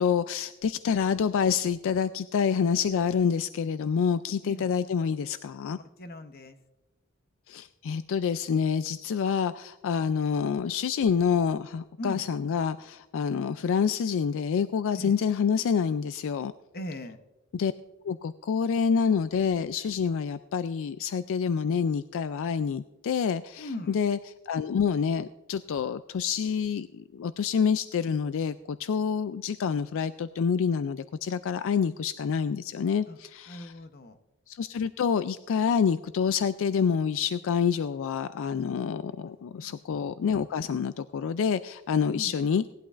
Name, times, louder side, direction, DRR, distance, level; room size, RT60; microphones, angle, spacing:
voice 1, 0.0-5.8 7.5-16.5 17.5-17.7 18.0-24.2 24.4-33.7 34.5-42.6, left 6 dB, 60° left, 13 dB, 0.3 m, -27 dB
voice 2, 6.0-6.6 12.0-12.2 15.0-15.2 16.7-17.2 23.6-24.0 33.1-33.2 33.5-34.2 38.3-38.9 39.2-39.8 42.1-42.3, left 1 dB, 45° left, 9 dB, 0.8 m, -40 dB
18.5 x 11.5 x 2.5 m, 1.0 s
head